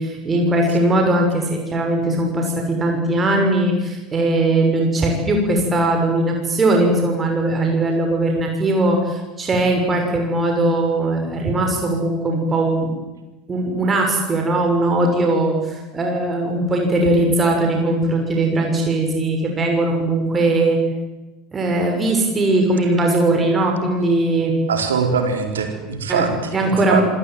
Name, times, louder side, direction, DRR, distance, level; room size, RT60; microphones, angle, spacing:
voice 1, 0.0-12.9 13.5-20.8 21.5-24.5 26.1-27.0, right 2 dB, 25° right, 2 dB, 6.6 m, -19 dB
voice 2, 24.7-27.0, right 6 dB, 75° right, 5 dB, 4.3 m, -22 dB
27.0 x 20.5 x 9.4 m, 1.1 s
figure-of-eight pair, 75°, 0 cm